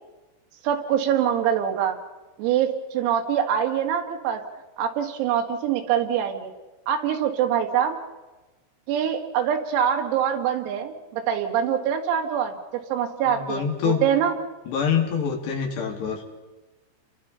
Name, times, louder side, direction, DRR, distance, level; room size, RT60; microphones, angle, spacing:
voice 1, 0.6-2.0 2.4-4.4 4.8-6.5 6.9-8.0 8.9-14.3, right 9 dB, 85° right, 2 dB, 4.7 m, -24 dB
voice 2, 13.2-14.1 14.7-16.2, left 7 dB, 60° left, 2 dB, 4.8 m, -25 dB
29.0 x 23.5 x 5.7 m, 1.2 s
omnidirectional pair, 6.0 m